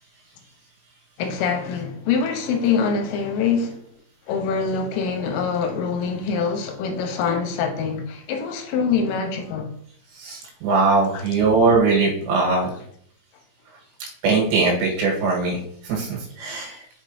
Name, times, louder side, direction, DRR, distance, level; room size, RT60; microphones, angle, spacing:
voice 1, 1.2-3.8 4.3-9.7 11.1-11.2, left 5 dB, 85° left, 3.5 m, -24 dB
voice 2, 10.1-12.7 14.0-15.6 15.8-16.8, right 3 dB, 75° right, 3.4 m, -21 dB
6.4 x 6.1 x 2.7 m
omnidirectional pair, 5.6 m